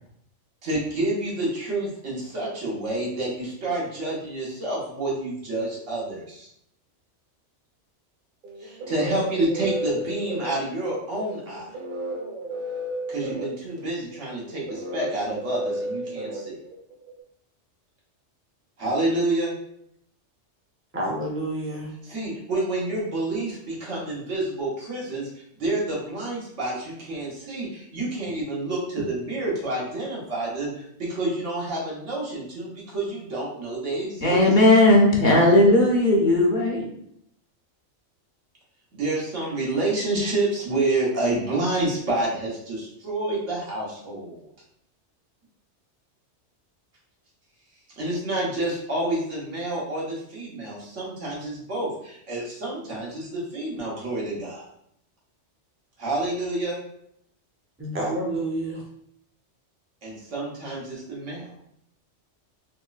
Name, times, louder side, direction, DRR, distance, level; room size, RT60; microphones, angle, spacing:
voice 1, 0.6-6.5 8.6-11.7 13.1-16.6 18.8-19.5 22.0-25.3 25.6-34.5 38.9-44.5 48.0-54.7 56.0-56.8 60.0-61.5, right 2 dB, 85° right, -4 dB, 1.5 m, -28 dB
sound 1, 8.4-17.1, right 1 dB, 55° right, 1.1 m, -33 dB
voice 2, 20.9-22.0 57.8-58.8, right 1 dB, 15° right, -3 dB, 0.6 m, -29 dB
voice 3, 34.2-36.8, left 1 dB, 50° left, -2 dB, 0.7 m, -17 dB
3.7 x 3.0 x 2.4 m, 0.72 s
omnidirectional pair, 1.2 m